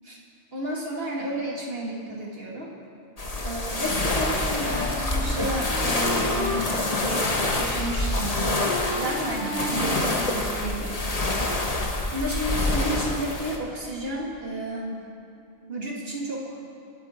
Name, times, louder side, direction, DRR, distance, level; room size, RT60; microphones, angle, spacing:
voice 1, 0.5-2.7 3.4-4.9 5.2-8.5 8.9-11.0 12.1-15.0 15.7-16.6, right 1 dB, 70° right, -3 dB, 2.4 m, -32 dB
sound 1, 3.2-13.6, left 2 dB, 40° left, 1.4 m, -26 dB
Wind instrument woodwind instrument, 4.6-6.7 7.0-8.1 8.3-10.5, left 2 dB, 60° left, 1.8 m, -34 dB
26.0 x 9.0 x 4.4 m, 2.6 s
omnidirectional pair, 1.0 m